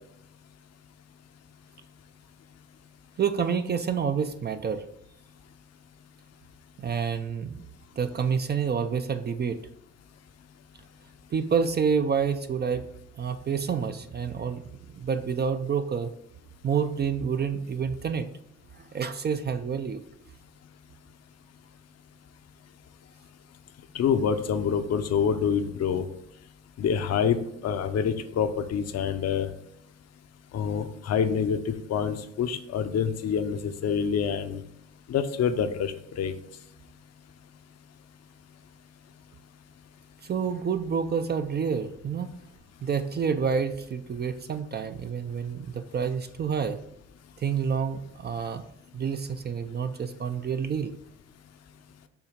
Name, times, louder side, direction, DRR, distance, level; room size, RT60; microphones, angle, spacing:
voice 1, 3.2-4.8 6.8-7.6 8.0-9.6 11.3-12.9 13.2-14.6 14.9-16.1 16.6-18.3 18.7-20.0 40.2-42.3 42.8-46.8 47.4-48.6 48.9-50.9, right 6 dB, 35° right, 9 dB, 0.4 m, -28 dB
voice 2, 23.9-26.0 26.8-27.4 27.6-29.5 30.5-34.6 35.1-36.3, left 7 dB, 55° left, 9 dB, 0.7 m, -26 dB
7.1 x 2.8 x 5.1 m, 0.74 s
cardioid pair, 90°, 30 cm